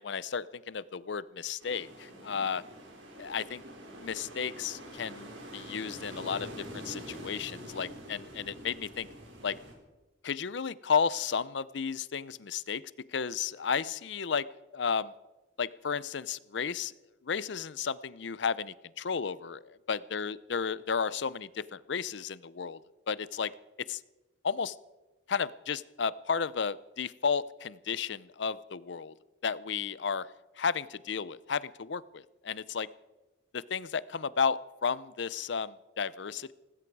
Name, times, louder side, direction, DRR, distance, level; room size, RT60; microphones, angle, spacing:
voice 1, 0.0-2.6 3.2-3.6 4.0-9.1 9.4-9.6 10.2-12.8 13.1-14.5 14.7-15.1 15.6-16.9 17.2-19.6 19.9-22.8 23.1-23.5 23.9-24.0 24.4-24.7 25.3-29.1 29.4-30.3 30.6-32.9 33.5-36.5, left 6 dB, 65° left, 19 dB, 0.6 m, -33 dB
sound 1, 1.6-9.7, equal, 80° right, 4.3 m, -45 dB
18.5 x 16.5 x 4.7 m, 1.1 s
head